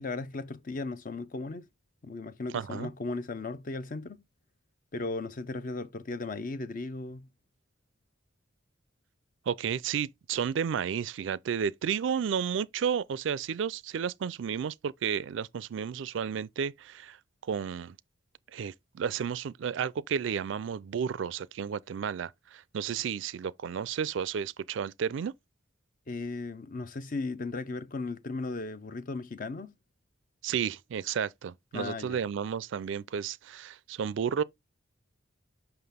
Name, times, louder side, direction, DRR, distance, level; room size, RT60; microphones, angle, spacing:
voice 1, 0.0-1.7 2.0-4.2 4.9-7.3 26.1-29.7 31.7-32.2, left 3 dB, 45° left, 0.6 m, -36 dB
voice 2, 2.5-2.9 9.5-17.2 17.4-18.0 18.5-25.3 30.4-34.4, right 7 dB, 65° right, 0.4 m, -32 dB
5.9 x 5.8 x 3.5 m
head